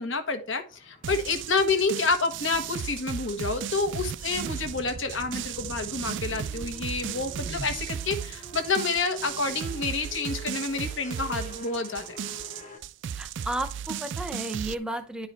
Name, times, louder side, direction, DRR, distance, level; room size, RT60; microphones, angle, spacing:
voice 1, 0.0-12.1, left 4 dB, 65° left, 6 dB, 1.3 m, -29 dB
sound 1, 0.7-12.8, left 1 dB, 35° left, 1.2 m, -48 dB
sound 2, 1.0-14.7, right 8 dB, 55° right, 0.3 m, -36 dB
Wind, 3.6-8.3, right 3 dB, 85° right, 0.7 m, -43 dB
voice 2, 13.2-15.3, right 1 dB, 5° right, 8 dB, 0.8 m, -33 dB
10.5 x 4.8 x 4.3 m, 0.36 s
head